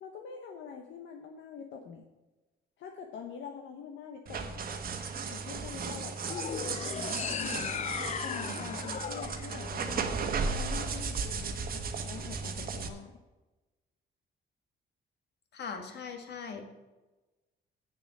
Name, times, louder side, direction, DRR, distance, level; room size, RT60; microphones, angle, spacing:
voice 1, 0.0-2.0 2.8-4.5 5.3-6.2 6.6-7.9 8.2-10.1 10.4-13.2, left 7 dB, 80° left, 3 dB, 1.1 m, -45 dB
sound 1, 4.3-12.9, right 5 dB, 50° right, 1.2 m, -35 dB
sound 2, 6.2-10.6, left 8 dB, 40° left, 0.4 m, -37 dB
voice 2, 15.5-16.7, left 5 dB, 60° left, 5 dB, 1.8 m, -40 dB
8.0 x 7.0 x 7.3 m, 1.1 s
cardioid pair, 130°, 19 cm